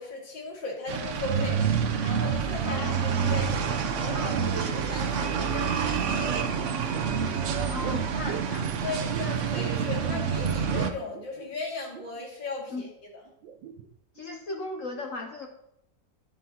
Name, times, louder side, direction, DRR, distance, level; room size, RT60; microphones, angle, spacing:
voice 1, 0.0-1.7 2.0-6.6 8.8-12.9, left 3 dB, 80° left, -1 dB, 3.0 m, -37 dB
sound 1, 0.9-10.9, right 7 dB, 60° right, 0.8 m, -27 dB
voice 2, 2.6-3.1 7.7-8.7 12.7-12.9 14.1-15.5, left 2 dB, 55° left, 3 dB, 1.1 m, -36 dB
sound 2, 7.8-9.9 10.2-12.2 12.7-12.8 13.3-14.3 14.6-14.7, right 8 dB, 80° right, 1.3 m, -44 dB
11.0 x 9.3 x 2.9 m, 0.77 s
omnidirectional pair, 2.0 m